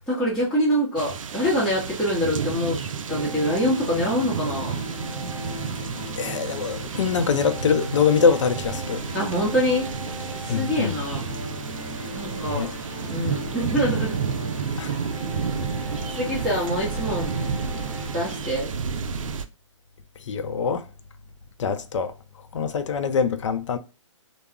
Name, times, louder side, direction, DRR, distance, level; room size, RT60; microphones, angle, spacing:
voice 1, 0.1-2.8 3.1-4.7 9.1-9.9 10.4-11.2 12.1-12.7 13.1-14.2 16.2-17.3 18.0-18.7, equal, 5° left, 0.8 m, -25 dB
sound 1, 1.0-19.4, right 6 dB, 85° right, 0.4 m, -31 dB
sound 2, 3.1-18.5, left 1 dB, 35° left, 0.8 m, -38 dB
voice 2, 6.2-9.0 10.5-11.0 12.5-12.7 14.8-14.9 20.3-20.9 21.6-22.1 22.5-23.8, left 6 dB, 70° left, 0.4 m, -23 dB
2.3 x 2.0 x 3.4 m
hypercardioid pair, 150°, 16 cm